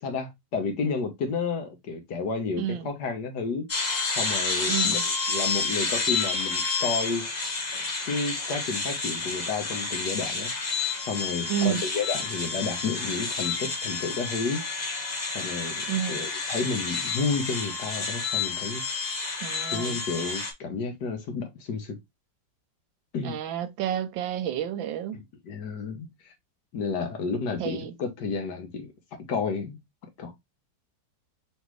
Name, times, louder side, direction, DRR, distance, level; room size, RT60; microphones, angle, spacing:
voice 1, 0.0-3.7 4.1-5.0 5.3-7.2 8.0-10.5 11.1-14.6 15.3-18.8 19.7-22.0 23.1-23.4 25.1-26.3 26.7-28.9 29.3-29.8 30.2-30.3, left 4 dB, 65° left, 1.5 m, -31 dB
voice 2, 2.6-2.9 4.7-5.0 11.5-11.8 15.9-16.2 19.4-20.0 23.2-25.2 27.6-27.9, right 10 dB, 85° right, 1.4 m, -30 dB
sound 1, 3.7-20.5, left 4 dB, 40° left, 0.6 m, -30 dB
3.9 x 3.7 x 3.1 m
omnidirectional pair, 2.0 m